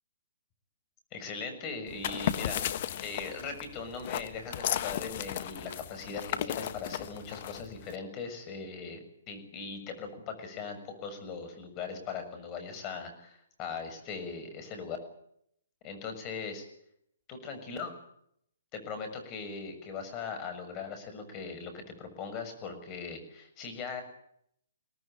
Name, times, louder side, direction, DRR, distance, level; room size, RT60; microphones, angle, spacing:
voice 1, 1.1-2.6 3.0-15.0 15.8-16.7 17.3-17.9 18.7-24.0, left 5 dB, 30° left, 7 dB, 6.9 m, -40 dB
sound 1, 1.9-8.0, left 11 dB, 45° left, 1.4 m, -35 dB
24.0 x 18.5 x 9.1 m, 0.73 s
hypercardioid pair, 135°, 0 cm